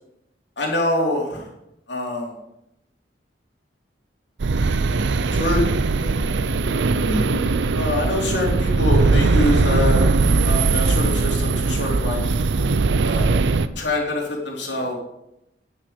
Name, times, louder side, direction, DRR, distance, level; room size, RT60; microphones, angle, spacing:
voice 1, 0.6-1.5 1.9-2.3 5.3-5.6 6.0-6.1 7.1-10.1 10.4-12.2 13.0-13.3 13.8-15.0, left 1 dB, 80° left, -1 dB, 3.3 m, -25 dB
sound 1, 4.4-13.7, right 3 dB, 80° right, 0.6 m, -20 dB
9.7 x 6.6 x 6.9 m, 0.84 s
head